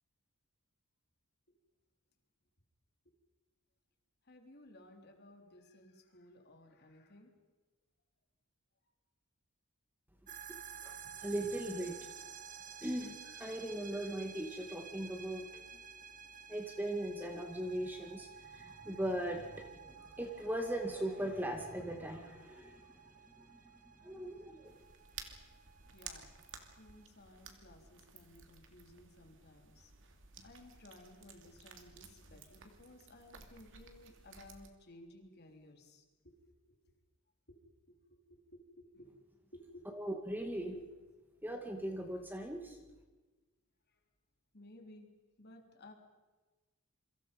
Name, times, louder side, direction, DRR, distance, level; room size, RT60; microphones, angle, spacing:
voice 1, 4.3-7.3 25.9-26.4 26.8-29.9 30.4-36.8 37.5-39.2 39.5-39.9 40.7-40.9 44.5-45.1 45.4-45.9, left 1 dB, 50° left, 3 dB, 3.5 m, -57 dB
sound 1, 10.3-27.1, right 7 dB, 35° right, 1.4 m, -53 dB
voice 2, 10.8-12.1 12.8-15.7 16.5-23.7 24.0-24.8 39.9-40.7 41.4-42.8, right 1 dB, 10° right, 4 dB, 2.2 m, -39 dB
sound 2, 24.6-34.7, right 6 dB, 60° right, 2.8 m, -55 dB
28.0 x 25.0 x 5.4 m, 1.2 s
head